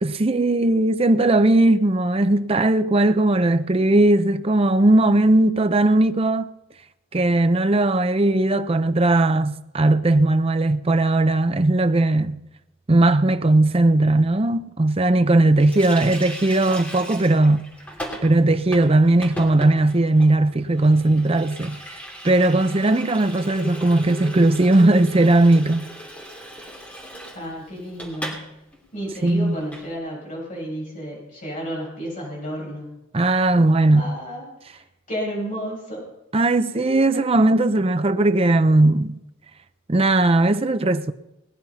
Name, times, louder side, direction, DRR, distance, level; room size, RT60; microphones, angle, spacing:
voice 1, 0.0-6.5 7.1-12.4 12.9-17.6 18.2-22.0 22.2-25.9 29.2-29.6 33.1-34.2 36.3-39.2 39.9-41.1, right 2 dB, 25° right, 0.6 m, -18 dB
Water tap faucet, 15.6-28.5 28.7-28.8 29.1-29.9, equal, 5° left, 2.8 m, -37 dB
voice 2, 27.3-28.6 28.9-32.9 33.5-34.5 35.1-36.0 36.7-36.8 37.1-37.2, equal, 35° left, 8.0 m, -32 dB
19.0 x 10.5 x 5.7 m
head